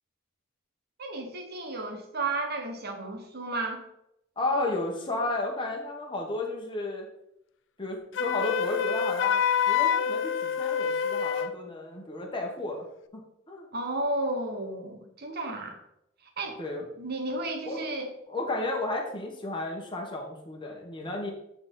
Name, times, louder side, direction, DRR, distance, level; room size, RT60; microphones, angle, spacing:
voice 1, 1.0-3.8 13.7-15.8 16.4-16.6 17.0-18.1, right 2 dB, 50° right, 4 dB, 1.2 m, -33 dB
voice 2, 4.4-7.1 7.8-12.9 13.5-13.7 16.6-16.8 17.7-17.9 18.3-21.3, left 2 dB, 25° left, 0 dB, 1.2 m, -33 dB
Wind instrument woodwind instrument, 8.1-11.6, left 7 dB, 60° left, 0.4 m, -26 dB
8.7 x 4.0 x 3.9 m, 0.81 s
head